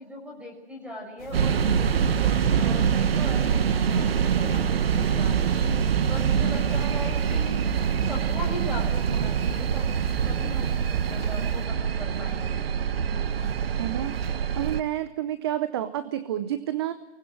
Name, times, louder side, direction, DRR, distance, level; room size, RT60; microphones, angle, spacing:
voice 1, 0.0-1.7 2.2-5.6 6.1-9.9 10.3-12.6, left 1 dB, 5° right, 0 dB, 5.9 m, -39 dB
sound 1, 1.2-11.7, left 4 dB, 85° left, 3.4 m, -42 dB
sound 2, 1.3-14.8, right 8 dB, 60° right, 1.4 m, -25 dB
voice 2, 13.8-16.9, right 12 dB, 25° right, 13 dB, 0.7 m, -30 dB
24.0 x 19.5 x 7.8 m, 1.1 s
hypercardioid pair, 155°, 34 cm